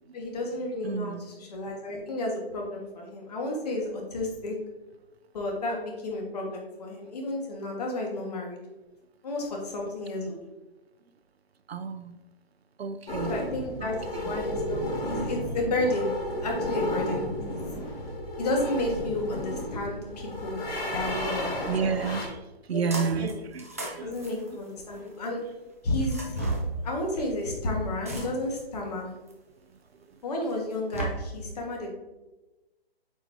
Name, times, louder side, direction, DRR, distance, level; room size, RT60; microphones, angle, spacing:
voice 1, 0.1-4.6 5.3-8.6 9.2-10.4 13.3-16.1 16.4-17.6 18.4-20.6 20.9-21.5 22.7-23.4 24.0-25.4 25.8-26.5 26.8-29.1 30.2-31.9, left 2 dB, 40° left, 0 dB, 1.7 m, -32 dB
voice 2, 0.8-1.2 11.7-12.2 12.8-13.3 14.1-14.2 21.7-22.4 22.7-24.1, right 6 dB, 80° right, 10 dB, 0.7 m, -30 dB
sound 1, 13.1-22.3, left 1 dB, 70° left, 2.2 m, -33 dB
sound 2, 22.9-23.3 23.6-25.1 26.0-26.7 28.1-28.6 29.3-29.4 30.5-31.0, right 3 dB, 15° right, 0.4 m, -35 dB
8.2 x 4.7 x 2.8 m, 1.1 s
hypercardioid pair, 160°, 31 cm